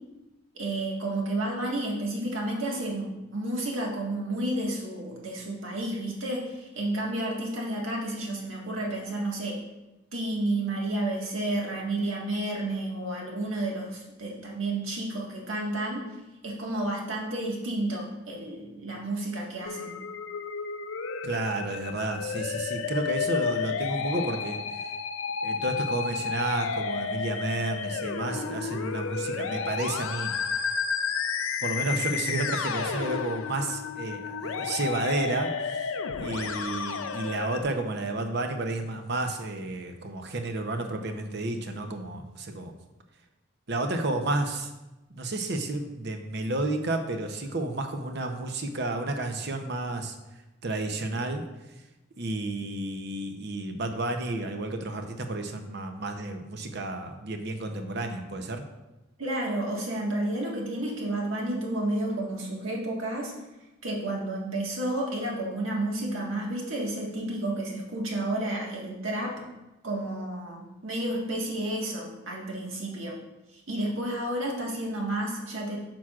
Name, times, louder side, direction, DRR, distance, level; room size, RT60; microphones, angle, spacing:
voice 1, 0.5-9.6 10.1-16.1 16.4-20.0 59.2-63.3 63.8-69.4 69.8-73.2 73.5-75.8, right 1 dB, 80° right, -2 dB, 1.7 m, -31 dB
Musical instrument, 19.7-37.6, left 6 dB, 80° left, 0.5 m, -32 dB
voice 2, 21.2-24.9 25.4-30.4 31.6-42.7 43.7-44.7 45.1-50.2 50.6-51.4 52.2-58.7, right 2 dB, 55° right, 5 dB, 0.7 m, -31 dB
8.8 x 6.0 x 2.4 m, 1.0 s
head